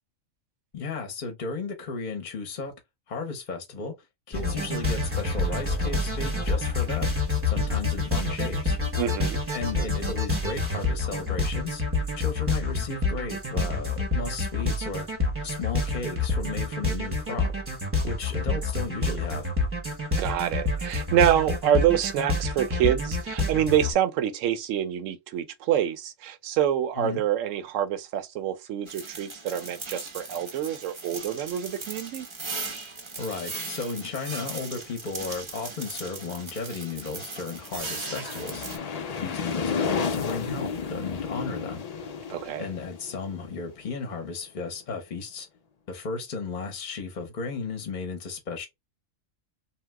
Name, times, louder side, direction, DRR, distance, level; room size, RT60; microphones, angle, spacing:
voice 1, 0.7-2.7 3.1-3.9 4.3-7.1 7.5-8.8 9.5-11.8 12.2-15.1 15.4-17.5 18.0-19.5 27.0-27.2 33.2-38.6 39.2-41.8 42.6-45.5 45.9-48.7, left 4 dB, 45° left, 0.7 m, -34 dB
sound 1, 4.3-23.9, left 3 dB, 10° right, 0.8 m, -27 dB
voice 2, 9.0-9.4 20.2-32.3 42.3-42.7, right 10 dB, 75° right, 0.9 m, -26 dB
sound 2, 28.9-38.8, right 3 dB, 35° right, 0.4 m, -38 dB
sound 3, 37.4-44.1, left 6 dB, 70° left, 0.3 m, -33 dB
2.8 x 2.1 x 3.3 m
omnidirectional pair, 1.3 m